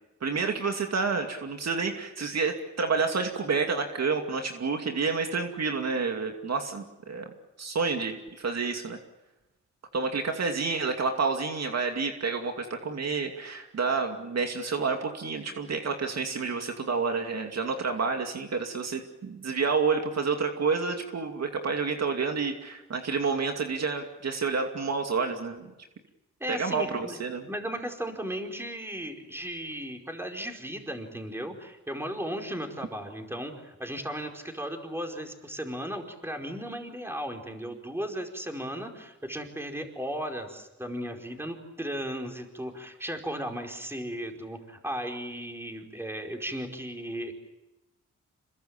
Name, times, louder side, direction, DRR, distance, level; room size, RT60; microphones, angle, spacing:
voice 1, 0.2-7.3 7.6-9.0 9.9-25.7 26.5-27.5, right 4 dB, 60° right, 4 dB, 2.6 m, -29 dB
voice 2, 26.4-27.2 27.5-47.3, equal, 10° right, 3 dB, 4.8 m, -36 dB
27.0 x 22.0 x 8.8 m, 0.96 s
cardioid pair, 90°, 29 cm